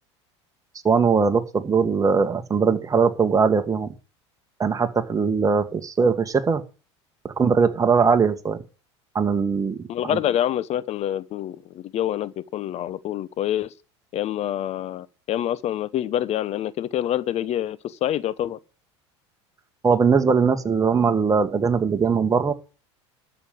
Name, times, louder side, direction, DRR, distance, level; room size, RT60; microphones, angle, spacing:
voice 1, 0.8-3.9 4.6-6.6 7.2-8.6 9.1-10.2 19.8-22.5, right 5 dB, 20° right, 1.8 m, -20 dB
voice 2, 9.9-13.7 14.1-18.6, left 11 dB, 45° left, 0.9 m, -26 dB
12.5 x 6.9 x 9.1 m
hypercardioid pair, 80°, 15 cm